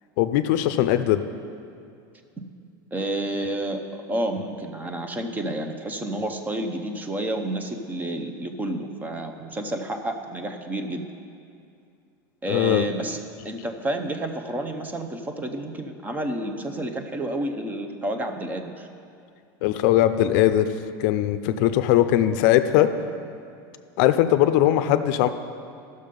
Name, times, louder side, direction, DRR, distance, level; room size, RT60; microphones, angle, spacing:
voice 1, 0.2-1.2 12.5-12.8 19.6-20.7 21.0-22.9 24.0-25.3, left 12 dB, 60° left, 10 dB, 0.5 m, -20 dB
voice 2, 2.9-11.1 12.4-13.2 13.4-18.9, right 1 dB, 15° right, 6 dB, 0.7 m, -30 dB
12.0 x 6.6 x 5.2 m, 2.4 s
supercardioid pair, 140°, 11 cm